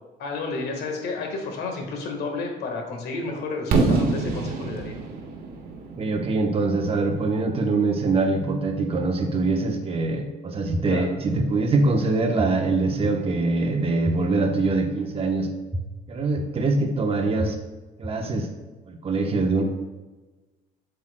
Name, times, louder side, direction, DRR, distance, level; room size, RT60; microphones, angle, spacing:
voice 1, 0.2-4.9 10.8-11.1, left 3 dB, 70° left, 3 dB, 1.6 m, -31 dB
Fireworks, 3.7-7.6, right 3 dB, 65° right, 1.4 m, -26 dB
voice 2, 6.0-15.5 16.1-17.6 18.0-18.5 18.9-19.6, right 3 dB, 35° right, 2 dB, 1.1 m, -23 dB
sound 1, 10.7-10.8 11.4-11.5 12.4-12.5 13.0-13.1 14.0-14.1 14.7-14.8 15.7-15.8 16.4-16.5 17.4-17.5 18.0-18.1, equal, 5° right, 0.7 m, -28 dB
8.1 x 7.6 x 2.3 m, 1.2 s
cardioid pair, 110°, 17 cm